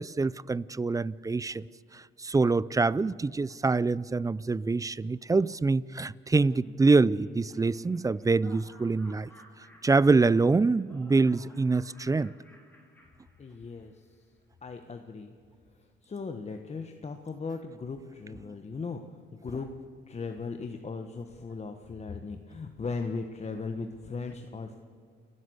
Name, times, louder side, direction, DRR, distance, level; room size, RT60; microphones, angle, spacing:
voice 1, 0.0-1.6 1.9-9.3 9.8-12.3, right 3 dB, 15° right, 0.4 m, -25 dB
Laughter, 6.4-13.9, equal, 10° left, 4.9 m, -56 dB
voice 2, 13.4-13.9 14.6-15.3 16.0-19.0 19.4-19.7 20.1-24.7, left 4 dB, 35° left, 1.2 m, -37 dB
29.5 x 11.0 x 8.0 m
cardioid pair, 90°, 20 cm